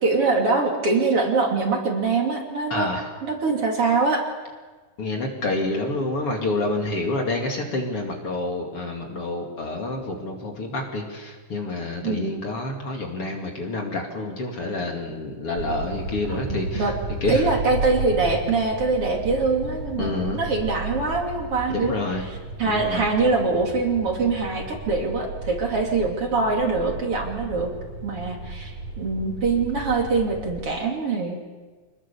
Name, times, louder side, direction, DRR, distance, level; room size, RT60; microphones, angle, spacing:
voice 1, 0.0-2.9 3.2-4.2 12.0-12.3 16.3-16.9 17.3-21.9 22.6-27.7 28.0-31.4, right 3 dB, 45° right, 1 dB, 3.4 m, -23 dB
voice 2, 2.7-3.1 5.0-16.9 17.2-17.5 20.0-20.4 21.7-22.2 22.6-23.1, left 2 dB, 45° left, 1 dB, 3.3 m, -28 dB
sound 1, 15.6-30.6, right 2 dB, 75° right, 5.2 m, -34 dB
26.5 x 21.0 x 7.0 m, 1.3 s
omnidirectional pair, 3.8 m